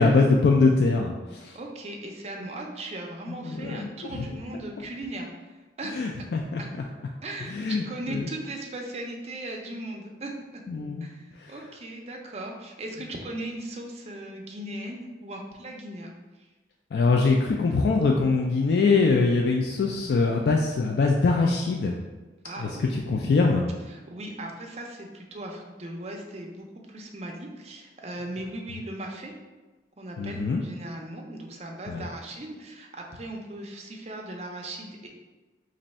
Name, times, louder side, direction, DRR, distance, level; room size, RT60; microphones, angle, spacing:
voice 1, 0.0-1.6 3.3-4.3 6.0-6.6 7.5-7.8 8.1-8.3 10.7-11.1 11.4-11.5 16.9-22.0 22.6-23.7 30.2-30.6 31.9-32.0, left 3 dB, 65° left, 1 dB, 0.3 m, -23 dB
voice 2, 1.5-5.5 5.8-6.2 6.6-6.7 7.2-10.3 11.0-16.5 22.4-23.0 23.9-29.3 30.0-35.1, right 1 dB, 35° right, 1 dB, 0.5 m, -38 dB
3.1 x 2.6 x 4.2 m, 1.2 s
head